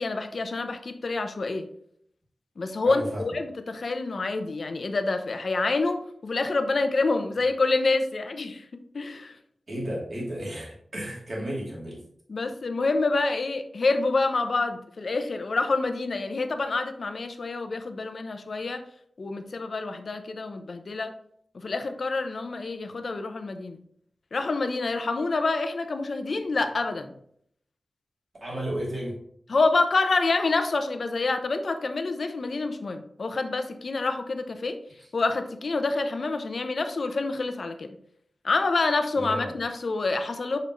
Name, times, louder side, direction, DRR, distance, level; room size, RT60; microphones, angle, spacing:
voice 1, 0.0-1.7 2.6-8.6 8.9-9.3 12.3-18.8 19.2-21.1 21.5-23.8 24.3-27.1 29.5-34.8 35.1-37.9 38.4-40.6, left 3 dB, 60° left, 7 dB, 0.7 m, -27 dB
voice 2, 2.8-3.2 9.7-12.0 28.4-29.1 39.2-39.6, right 1 dB, 45° right, -4 dB, 2.7 m, -33 dB
6.6 x 5.2 x 3.1 m, 0.67 s
wide cardioid pair, 120°, 0 cm